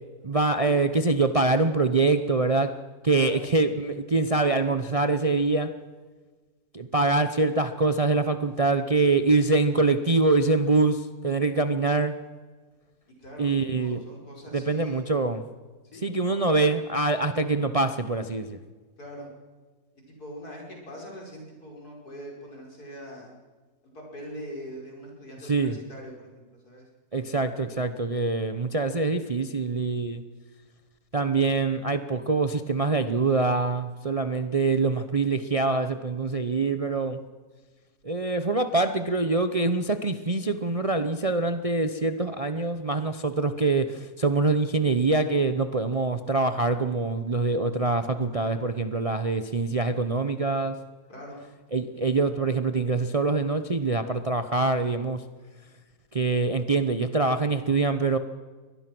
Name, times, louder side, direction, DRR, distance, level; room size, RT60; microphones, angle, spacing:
voice 1, 0.2-2.7 3.0-5.7 6.7-12.2 13.4-14.0 14.5-15.4 16.0-18.6 25.4-25.8 27.1-30.2 31.1-37.2 38.0-50.8 51.7-55.2 56.1-58.2, right 3 dB, 30° right, 9 dB, 0.7 m, -24 dB
voice 2, 13.2-15.1 15.9-16.2 19.0-19.3 20.2-23.3 23.9-26.9 51.1-51.4, equal, 75° left, -1 dB, 6.0 m, -42 dB
23.5 x 18.5 x 6.1 m, 1.4 s
omnidirectional pair, 1.7 m